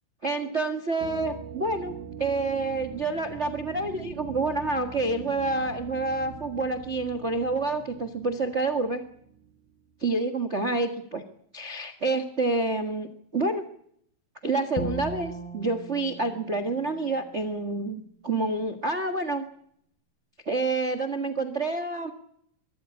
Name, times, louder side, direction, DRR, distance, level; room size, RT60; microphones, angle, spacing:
voice 1, 0.2-9.0 10.0-11.2 11.5-13.6 14.4-19.5 20.4-22.1, right 3 dB, 80° right, 8 dB, 0.6 m, -28 dB
sound 1, 1.0-9.7, right 7 dB, 65° right, 2.3 m, -43 dB
Bowed string instrument, 14.8-17.9, equal, 75° left, 6.2 m, -38 dB
23.0 x 14.5 x 9.8 m, 0.70 s
omnidirectional pair, 4.3 m